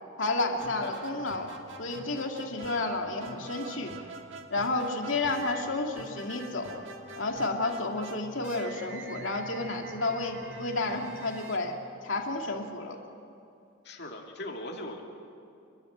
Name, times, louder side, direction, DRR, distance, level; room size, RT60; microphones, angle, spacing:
voice 1, 0.2-1.5 1.8-3.9 4.5-6.8 7.2-11.8 12.0-13.0, left 2 dB, 70° left, 2 dB, 2.4 m, -31 dB
sound 1, 0.6-12.4, right 3 dB, 70° right, 1.7 m, -45 dB
voice 2, 13.8-15.0, left 1 dB, 50° left, 0 dB, 2.5 m, -39 dB
29.5 x 12.0 x 9.3 m, 2.6 s
head